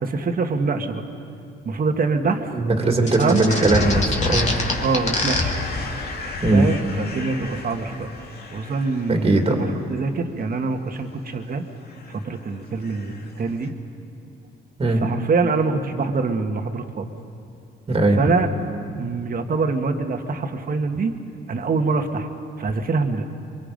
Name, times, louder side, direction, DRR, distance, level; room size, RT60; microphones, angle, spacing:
voice 1, 0.0-1.0 1.6-2.5 3.0-3.5 4.8-5.5 6.5-8.1 8.5-11.6 12.1-13.7 15.0-17.1 18.2-18.5 19.0-21.1 21.5-22.3 22.6-23.2, right 4 dB, 45° right, 5 dB, 1.7 m, -24 dB
voice 2, 2.5-4.5 6.4-6.7 9.1-9.6 14.8-15.0 17.9-18.2, right 2 dB, 30° right, 3 dB, 2.5 m, -19 dB
sound 1, 3.1-5.4, left 3 dB, 35° left, 2.9 m, -24 dB
sound 2, 3.5-9.8 11.9-12.4 12.8-13.4 13.6-13.7, left 3 dB, 50° left, 2.3 m, -30 dB
24.5 x 23.5 x 5.2 m, 2.5 s
cardioid pair, 90°, 20 cm